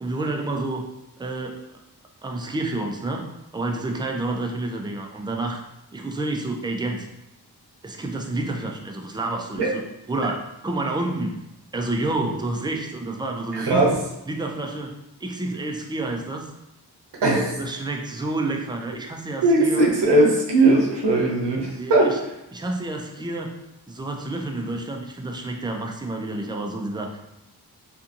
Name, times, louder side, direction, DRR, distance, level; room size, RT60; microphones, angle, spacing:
voice 1, 0.0-0.8 1.2-1.6 2.2-3.3 3.5-5.6 5.9-7.1 7.8-9.8 10.1-11.4 11.7-13.9 14.3-14.9 15.2-16.5 17.6-19.8 21.8-22.2 22.5-23.5 23.9-27.2, right 2 dB, 10° right, 2 dB, 0.3 m, -29 dB
voice 2, 13.5-14.0 17.2-17.5 19.4-22.1, right 2 dB, 80° right, -3 dB, 0.7 m, -19 dB
2.6 x 2.5 x 2.5 m, 0.88 s
cardioid pair, 65°, 40 cm